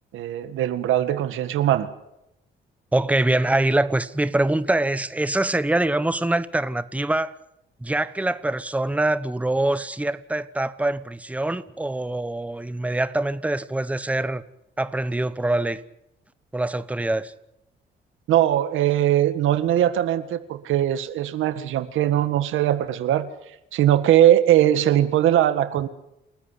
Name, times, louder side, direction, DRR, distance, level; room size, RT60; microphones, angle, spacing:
voice 1, 0.1-1.9 18.3-23.3 23.7-25.9, right 12 dB, 85° right, 1.8 m, -20 dB
voice 2, 2.9-7.3 7.8-14.4 14.8-15.8 16.5-17.3, right 2 dB, 5° right, 1.1 m, -24 dB
29.0 x 14.0 x 9.9 m
cardioid pair, 90°, 20 cm